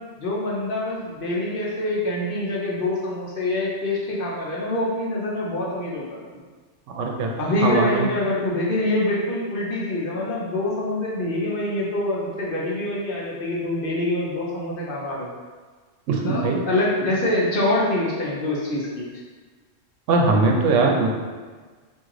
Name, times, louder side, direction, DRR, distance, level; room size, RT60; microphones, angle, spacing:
voice 1, 0.2-6.2 7.4-15.3 16.2-19.1, left 1 dB, 55° left, -4 dB, 0.8 m, -25 dB
voice 2, 6.9-7.3 7.6-8.1 16.1-16.6 20.1-21.1, right 3 dB, 80° right, 1 dB, 0.9 m, -20 dB
3.1 x 2.6 x 3.6 m, 1.4 s
omnidirectional pair, 1.2 m